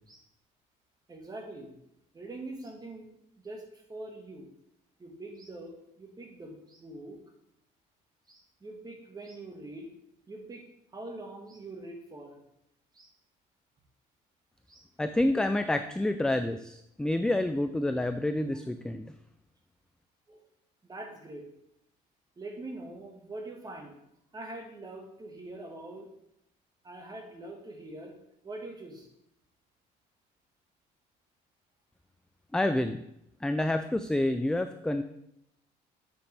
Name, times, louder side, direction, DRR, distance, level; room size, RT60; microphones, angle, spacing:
voice 1, 1.1-1.7 2.1-3.1 3.4-4.5 5.0-7.2 8.3-9.9 10.3-10.6 10.9-12.4 12.9-13.1 14.7-14.8 20.3-20.4 20.8-21.4 22.4-24.0 24.3-26.1 26.8-28.1 28.4-29.1, right 2 dB, 25° right, 1 dB, 1.8 m, -43 dB
voice 2, 15.0-19.1 32.5-33.0 33.4-35.0, left 1 dB, 5° left, 8 dB, 0.3 m, -28 dB
7.7 x 6.9 x 3.5 m, 0.78 s
cardioid pair, 110°, 17 cm